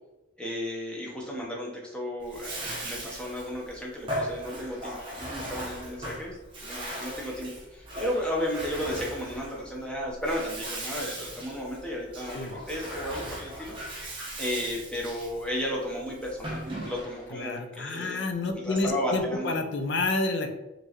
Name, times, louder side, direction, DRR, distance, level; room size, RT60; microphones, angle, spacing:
voice 1, 0.4-13.7 14.4-18.3 18.6-19.5, equal, 5° left, -3 dB, 0.8 m, -34 dB
Bathtub (filling or washing), 2.2-17.3, right 1 dB, 25° right, 1.0 m, -38 dB
voice 2, 17.3-20.5, left 2 dB, 55° left, 5 dB, 0.5 m, -29 dB
4.4 x 3.2 x 3.0 m, 1.0 s
head